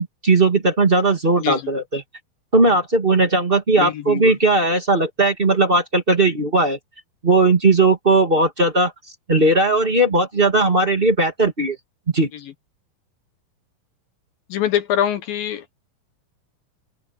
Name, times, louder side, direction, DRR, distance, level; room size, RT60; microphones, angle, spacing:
voice 1, 0.0-2.0 2.5-6.8 7.2-8.9 9.3-11.7 12.1-12.3, right 2 dB, 20° right, 1.5 m, -17 dB
voice 2, 3.8-4.4 14.5-15.6, left 10 dB, 70° left, 2.7 m, -23 dB
omnidirectional pair, 4.6 m